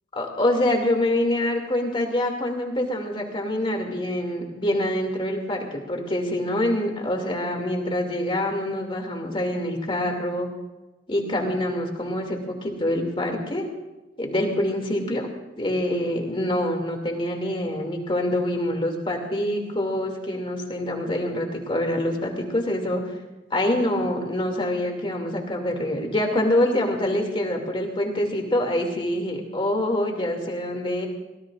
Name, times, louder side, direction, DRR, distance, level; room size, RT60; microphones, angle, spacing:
voice 1, 0.1-10.5 11.1-13.7 14.2-15.3 15.6-23.0 23.5-31.1, left 1 dB, 30° left, 2 dB, 2.7 m, -25 dB
25.0 x 18.5 x 2.6 m, 1.1 s
head